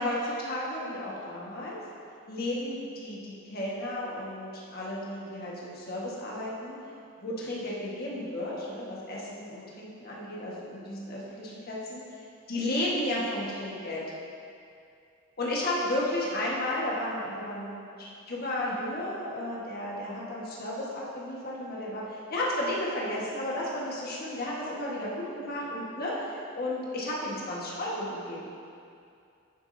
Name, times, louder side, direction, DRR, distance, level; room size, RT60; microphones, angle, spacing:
voice 1, 0.0-1.8 2.3-6.8 7.2-12.0 12.5-14.0 15.4-28.4, left 1 dB, 50° left, -5 dB, 1.5 m, -33 dB
9.8 x 7.2 x 2.8 m, 2.5 s
head